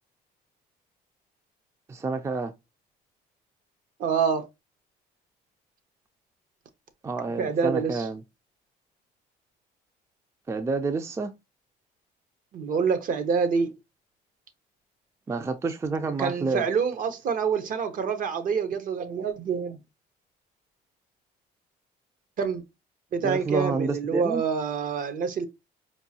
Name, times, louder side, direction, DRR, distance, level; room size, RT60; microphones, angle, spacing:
voice 1, 1.9-2.5 7.0-8.2 10.5-11.3 15.3-16.6 23.2-24.4, right 4 dB, 15° right, 0.3 m, -29 dB
voice 2, 4.0-4.4 7.4-8.1 12.5-13.7 16.0-19.8 22.4-22.6 23.1-25.5, right 6 dB, 55° right, 0.7 m, -26 dB
4.5 x 2.3 x 2.7 m
cardioid pair, 110°, 17 cm